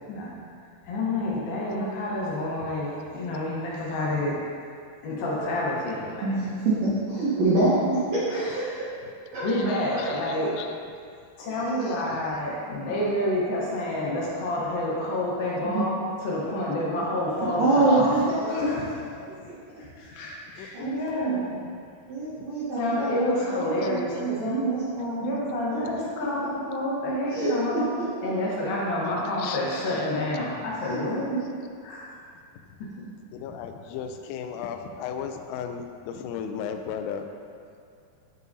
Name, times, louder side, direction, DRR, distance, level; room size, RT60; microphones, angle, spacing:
voice 1, 0.9-4.3 5.0-6.4 8.3-8.9 9.4-10.5 11.4-18.1 18.5-18.9 20.0-21.4 22.7-24.6 25.2-27.9 28.2-31.3 31.8-32.2, left 1 dB, 70° left, -5 dB, 2.8 m, -28 dB
voice 2, 6.2-8.6 9.3-10.1 11.5-12.0 15.6-15.9 17.4-19.6 20.7-21.7 22.1-25.3 25.7-26.5 27.3-28.3 30.8-31.0 31.3-31.4, right 2 dB, 75° right, -10 dB, 1.6 m, -27 dB
voice 3, 9.5-10.8 11.8-12.3 17.5-18.8 19.3-19.4 20.5-21.0 22.4-22.5 23.8-24.3 25.0-25.1 25.9-26.0 29.0-30.2 33.3-37.3, left 7 dB, 90° left, 6 dB, 2.0 m, -37 dB
9.5 x 5.5 x 2.7 m, 2.3 s
omnidirectional pair, 4.6 m